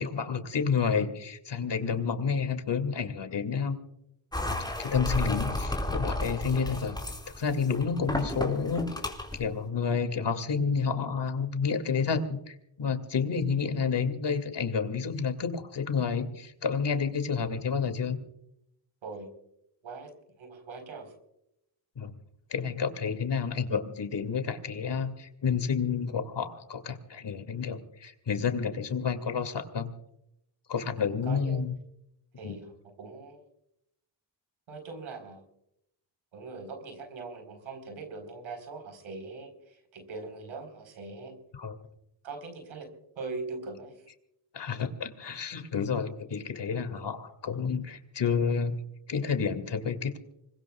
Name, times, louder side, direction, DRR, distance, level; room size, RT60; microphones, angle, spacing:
voice 1, 0.0-3.8 4.8-7.0 7.4-8.9 9.3-18.2 22.0-22.1 22.5-29.9 30.7-31.8 32.4-32.6 41.5-41.8 44.5-50.2, left 6 dB, 65° left, 8 dB, 2.4 m, -30 dB
sound 1, 4.3-9.4, left 1 dB, 10° left, 4.5 m, -33 dB
voice 2, 20.4-21.1 31.2-31.6 32.4-33.4 34.7-35.4 36.3-41.4 42.2-42.9 43.2-44.0, right 3 dB, 90° right, 6 dB, 4.3 m, -41 dB
26.0 x 21.0 x 2.4 m, 0.79 s
cardioid pair, 65°, 46 cm